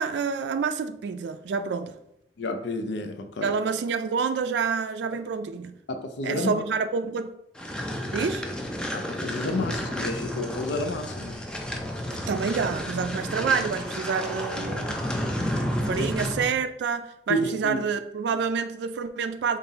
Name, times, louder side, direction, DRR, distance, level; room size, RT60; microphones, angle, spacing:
voice 1, 0.0-2.0 3.4-5.8 6.2-7.3 8.1-8.4 12.1-19.6, right 5 dB, 75° right, 0.3 m, -28 dB
voice 2, 2.4-3.6 5.9-6.6 8.9-11.4 16.0-16.1 17.3-17.8, left 1 dB, 80° left, 0.5 m, -30 dB
sound 1, 7.6-16.5, equal, 5° left, 0.4 m, -31 dB
5.4 x 2.5 x 3.9 m
head